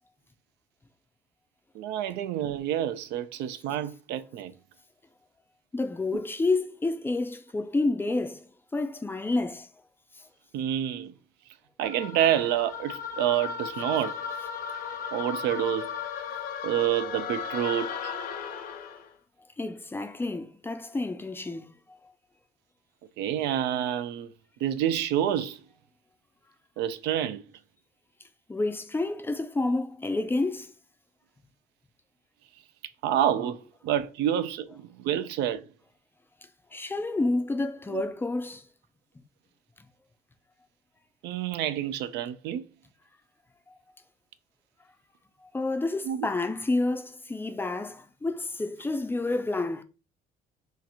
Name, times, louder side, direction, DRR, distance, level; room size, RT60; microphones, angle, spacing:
voice 1, 1.7-4.5 10.5-11.1 11.8-14.1 15.1-15.9 16.6-18.1 23.2-24.3 24.6-25.6 26.8-27.4 33.0-35.6 37.9-38.0 41.2-42.6 46.1-46.3, right 10 dB, 85° right, 0.4 m, -28 dB
voice 2, 5.7-8.4 8.7-9.7 19.6-21.7 28.5-30.7 36.7-38.6 45.5-49.8, left 2 dB, 15° left, 0.4 m, -29 dB
sound 1, 11.8-19.1, left 7 dB, 60° left, 0.6 m, -36 dB
2.9 x 2.5 x 4.1 m
cardioid pair, 110°, 17 cm